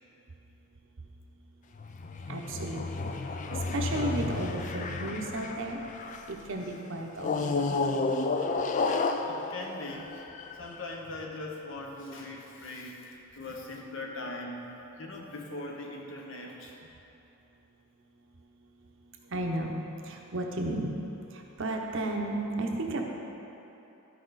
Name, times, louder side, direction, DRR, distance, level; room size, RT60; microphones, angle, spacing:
sound 1, 1.7-6.4 7.2-10.8, left 3 dB, 35° left, 0.3 m, -32 dB
voice 1, 2.3-2.9 3.5-5.8 6.3-7.8 19.3-20.9 21.6-23.0, right 2 dB, 55° right, 1 dB, 0.8 m, -33 dB
voice 2, 9.3-10.2 10.5-14.6 15.0-16.9, left 2 dB, 55° left, 0 dB, 1.0 m, -41 dB
12.5 x 4.9 x 4.0 m, 3.0 s
head